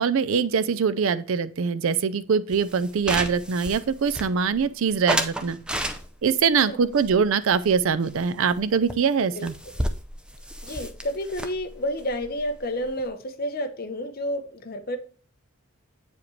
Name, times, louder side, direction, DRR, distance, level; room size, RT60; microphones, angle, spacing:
voice 1, 0.0-5.6 6.2-9.5, right 6 dB, 65° right, 0.4 m, -23 dB
sound 1, 2.5-4.6 5.1-6.4 6.9-8.2 8.5-8.6 8.9-9.0 9.2-13.1, equal, 5° right, 0.4 m, -32 dB
voice 2, 10.6-15.0, equal, 40° left, 0.7 m, -30 dB
8.3 x 4.9 x 3.1 m
head